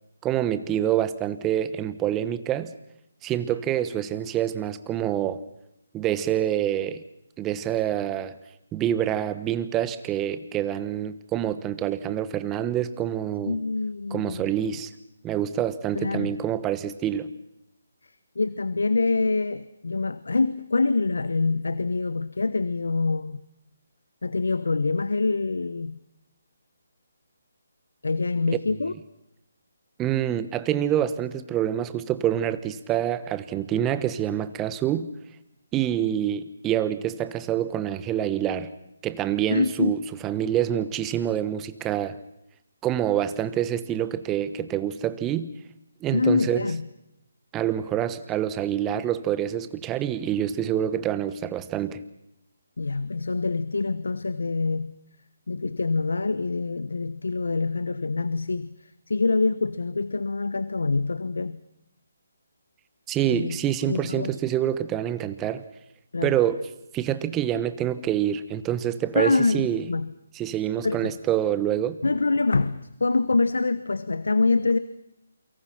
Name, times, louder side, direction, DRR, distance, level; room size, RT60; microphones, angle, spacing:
voice 1, 0.2-2.7 3.2-5.4 5.9-7.0 7.4-8.4 8.7-13.6 14.1-14.9 15.2-17.3 30.0-35.1 35.7-38.7 39.0-42.2 42.8-45.5 46.0-46.7 47.5-52.0 63.1-65.6 66.2-66.6 66.9-69.8 70.3-72.0, right 11 dB, 15° right, 13 dB, 1.2 m, -26 dB
voice 2, 13.5-14.5 15.9-16.3 18.4-23.4 24.2-26.0 28.0-28.9 39.5-40.0 46.1-46.8 52.8-54.9 55.5-58.8 59.1-61.6 63.3-63.6 63.8-64.4 66.1-66.4 69.1-70.1 70.8-71.2 72.0-74.8, left 3 dB, 80° left, 15 dB, 1.1 m, -25 dB
29.0 x 24.0 x 5.9 m, 0.83 s
figure-of-eight pair, 155°, 0 cm